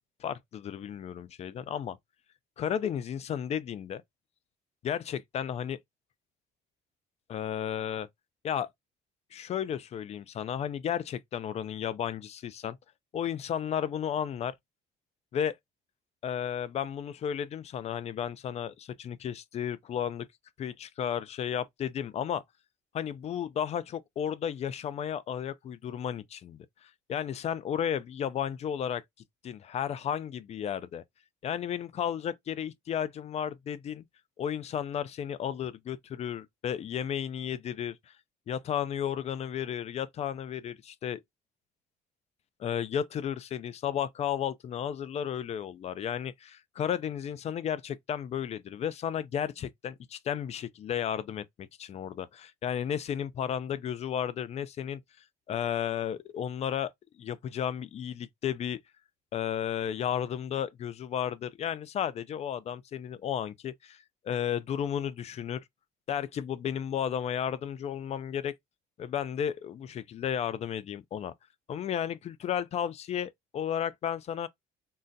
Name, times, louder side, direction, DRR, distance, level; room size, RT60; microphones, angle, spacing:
voice 1, 0.2-2.0 2.6-4.0 4.8-5.8 7.3-8.1 8.4-8.7 9.3-12.8 13.1-14.5 15.3-15.6 16.2-20.3 20.6-22.4 22.9-29.0 29.4-31.0 31.4-34.0 34.4-38.1 38.5-41.2 42.6-55.0 55.5-56.9 57.2-58.8 59.3-65.6 66.1-68.5 69.0-71.3 71.7-74.5, left 9 dB, 40° left, 0.4 m, -33 dB
3.8 x 2.1 x 2.6 m
cardioid pair, 110°, 17 cm